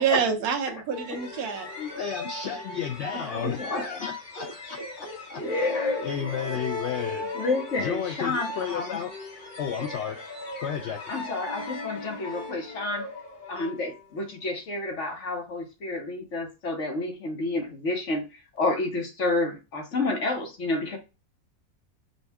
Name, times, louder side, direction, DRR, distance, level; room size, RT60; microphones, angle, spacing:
voice 1, 0.0-1.7 3.4-3.8 4.4-4.5 5.0-5.4, right 7 dB, 75° right, 1.3 m, -28 dB
sound 1, 0.9-14.4, left 2 dB, 35° left, 1.0 m, -38 dB
voice 2, 1.8-5.4 6.0-7.2 7.8-9.1 9.6-10.2 10.6-11.0, left 8 dB, 70° left, 0.6 m, -33 dB
voice 3, 3.2-4.1 5.4-6.6 7.3-9.0 11.1-13.1 13.5-21.0, left 2 dB, 55° left, 1.1 m, -30 dB
5.2 x 2.3 x 3.4 m
omnidirectional pair, 1.6 m